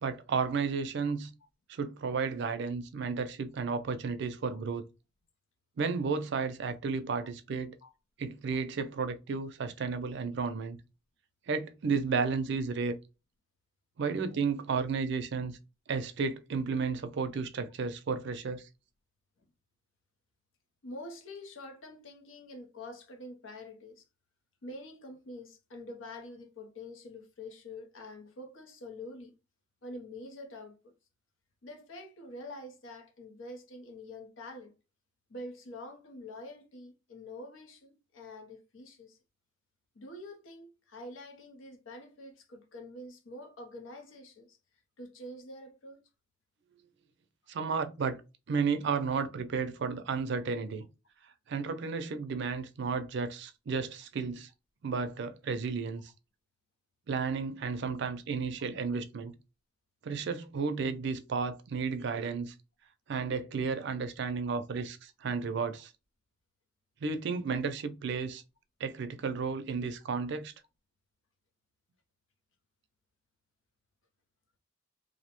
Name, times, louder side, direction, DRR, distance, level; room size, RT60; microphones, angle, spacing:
voice 1, 0.0-1.3 1.7-4.9 5.8-7.7 8.2-10.8 11.5-13.0 14.0-15.6 15.9-18.6 47.5-48.2 48.5-50.8 51.5-54.5 54.8-56.0 57.1-59.3 60.0-62.5 63.1-65.9 67.0-68.4 68.8-70.5, right 5 dB, 65° right, 0.4 m, -33 dB
voice 2, 20.8-24.1 24.6-29.4 29.8-30.9 31.6-34.8 35.3-39.2 39.9-44.6 45.0-46.1 70.1-70.2, left 1 dB, 85° left, 0.6 m, -46 dB
2.5 x 2.1 x 2.9 m
head